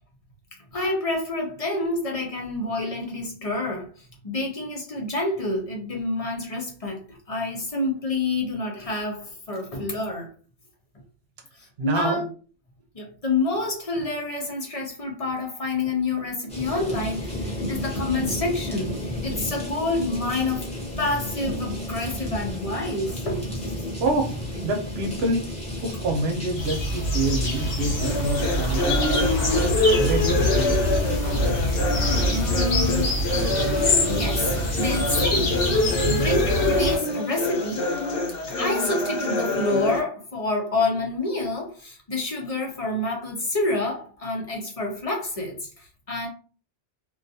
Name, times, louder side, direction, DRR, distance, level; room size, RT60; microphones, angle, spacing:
voice 1, 0.7-10.3 11.6-12.3 12.9-20.6 21.0-23.7 31.7-31.8 32.0-33.1 34.1-35.5 36.0-37.9 38.5-46.3, left 2 dB, 40° left, 0.6 m, -28 dB
voice 2, 11.8-12.2 23.9-29.5 30.0-30.9, right 2 dB, 65° right, 0.9 m, -27 dB
sound 1, 16.5-36.3, left 1 dB, 5° left, 0.7 m, -33 dB
sound 2, 26.6-37.0, equal, 85° left, 1.2 m, -25 dB
sound 3, 28.0-40.0, left 2 dB, 65° left, 0.9 m, -26 dB
2.5 x 2.3 x 2.6 m
omnidirectional pair, 1.2 m